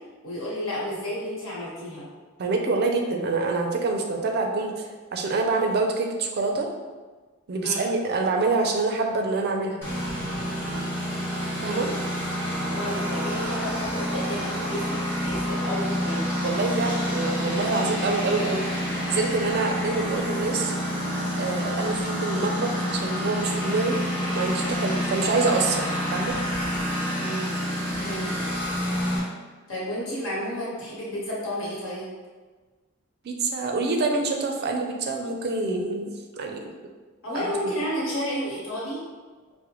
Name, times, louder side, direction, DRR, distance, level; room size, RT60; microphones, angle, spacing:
voice 1, 0.2-2.1 7.6-7.9 11.5-11.9 12.6-16.3 27.2-27.5 28.0-28.4 29.7-32.1 37.2-39.0, equal, 70° left, -6 dB, 1.3 m, -31 dB
voice 2, 2.4-6.7 7.5-9.8 11.6-11.9 16.4-18.7 19.1-20.7 21.4-24.0 24.3-26.4 33.2-36.1 36.4-36.7, right 3 dB, 50° right, 3 dB, 0.4 m, -26 dB
Engine, 9.8-29.2, equal, 10° left, 1.0 m, -28 dB
4.8 x 2.1 x 3.0 m, 1.4 s
head